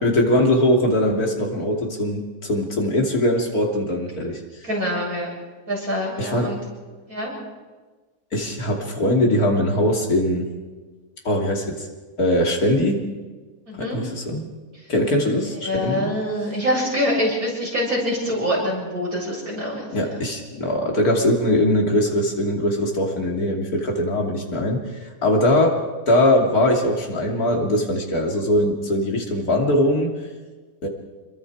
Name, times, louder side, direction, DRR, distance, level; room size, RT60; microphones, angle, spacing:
voice 1, 0.0-4.4 6.2-6.5 8.3-10.5 11.3-11.9 12.2-13.1 13.7-14.4 14.9-16.1 19.9-25.8 26.1-30.1 30.8-30.9, left 1 dB, 85° left, 1 dB, 3.4 m, -21 dB
voice 2, 4.6-5.3 5.7-6.6 7.1-7.3 13.7-14.1 15.5-20.2, equal, 70° right, -4 dB, 8.4 m, -25 dB
27.0 x 22.0 x 4.9 m, 1.3 s
omnidirectional pair, 1.5 m